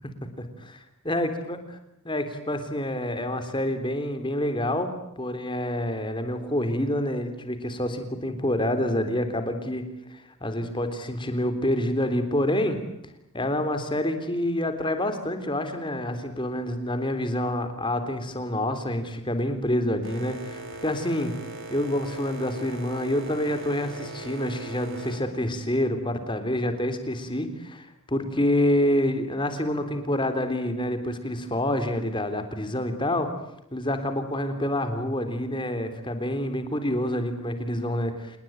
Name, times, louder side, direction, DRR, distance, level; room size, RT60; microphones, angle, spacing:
voice 1, 0.4-1.6 2.1-9.8 10.1-12.8 13.3-21.3 21.7-33.3 33.7-38.4, left 1 dB, 20° left, 8 dB, 3.5 m, -27 dB
Boat Water vehicle, 20.0-26.4, right 2 dB, 60° right, 6.6 m, -40 dB
28.0 x 20.5 x 9.3 m, 0.81 s
head